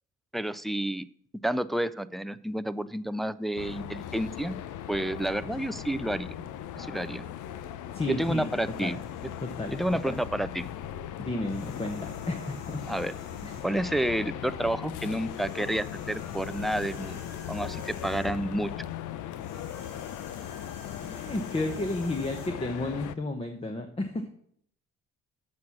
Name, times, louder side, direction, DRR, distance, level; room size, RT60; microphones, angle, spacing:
voice 1, 0.3-1.0 1.4-4.6 4.9-6.4 6.8-7.3 8.1-9.0 9.7-10.7 12.9-13.1 13.6-17.2 17.5-18.7, right 1 dB, ahead, 13 dB, 0.3 m, -30 dB
sound 1, 3.6-23.1, left 10 dB, 80° left, 0.6 m, -38 dB
voice 2, 7.9-8.5 8.8-9.0 9.4-9.8 10.0-10.2 11.2-12.9 13.4-13.6 21.0-24.3, left 2 dB, 20° left, 6 dB, 1.0 m, -32 dB
sound 2, 8.2-10.4 11.4-13.8 15.2-18.5 19.4-22.5, left 2 dB, 65° left, 3.0 m, -51 dB
7.5 x 6.3 x 7.3 m, 0.65 s
cardioid pair, 90°, 30 cm